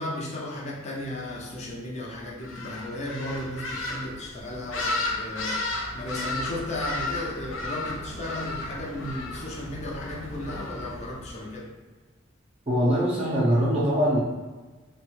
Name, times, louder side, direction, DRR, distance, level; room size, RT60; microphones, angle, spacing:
voice 1, 0.0-11.7, left 1 dB, 35° left, -3 dB, 0.6 m, -35 dB
sound 1, 2.4-11.5, left 2 dB, 85° left, 0.7 m, -34 dB
voice 2, 12.7-14.2, equal, 30° right, -6 dB, 0.6 m, -22 dB
3.1 x 2.2 x 3.0 m, 1.3 s
head